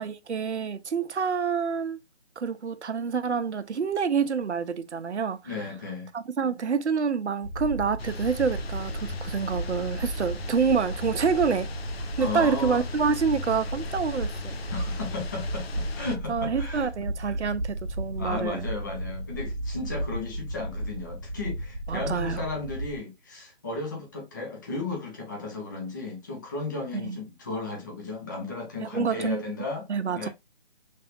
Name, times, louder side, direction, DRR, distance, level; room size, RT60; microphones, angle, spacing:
voice 1, 0.0-2.0 2.4-5.6 6.1-11.7 12.2-14.6 16.3-18.7 21.9-22.4 26.9-27.2 28.8-29.5 29.9-30.3, right 6 dB, 90° right, 0.7 m, -27 dB
voice 2, 5.4-6.1 12.2-12.8 14.7-16.9 18.2-29.8 30.1-30.3, left 3 dB, 20° left, 0.7 m, -35 dB
sound 1, 7.4-23.0, right 1 dB, 15° right, 1.3 m, -34 dB
sound 2, 8.0-16.2, left 3 dB, 65° left, 0.6 m, -39 dB
5.5 x 3.4 x 2.6 m
hypercardioid pair, 165°, 33 cm